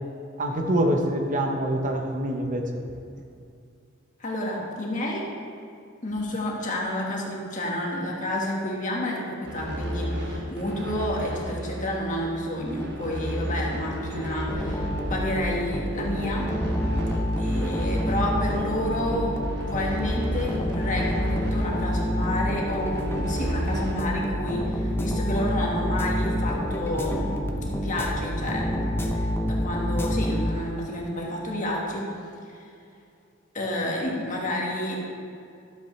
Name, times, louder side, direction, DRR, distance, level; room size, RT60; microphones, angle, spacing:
voice 1, 0.4-2.7, right 1 dB, 40° right, 3 dB, 0.8 m, -25 dB
voice 2, 4.2-5.2 6.0-16.5 17.4-19.4 19.7-32.1 32.5-32.6 33.5-35.0, left 1 dB, 40° left, -2 dB, 1.6 m, -30 dB
sound 1, 9.4-23.9, equal, 55° right, 1.1 m, -33 dB
sound 2, 14.5-30.9, equal, 10° left, 0.7 m, -28 dB
12.5 x 7.5 x 3.2 m, 2.4 s
head